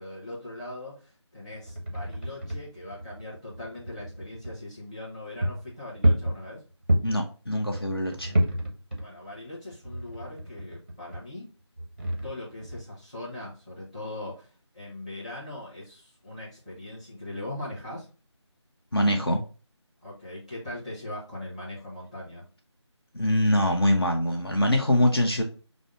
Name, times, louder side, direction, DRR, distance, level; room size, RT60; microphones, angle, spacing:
voice 1, 0.0-6.6 9.0-11.5 12.2-18.1 20.0-22.4, left 1 dB, 15° left, -7 dB, 1.0 m, -40 dB
sound 1, 1.5-4.6 5.0-5.1 5.4-7.3 7.7-9.4 9.7-11.2 11.8-13.0, right 1 dB, 20° right, 0.6 m, -29 dB
voice 2, 7.0-8.3 18.9-19.4 23.1-25.4, left 1 dB, 55° left, 2 dB, 0.7 m, -23 dB
5.0 x 2.0 x 3.6 m, 0.36 s
figure-of-eight pair, 165°, 15 cm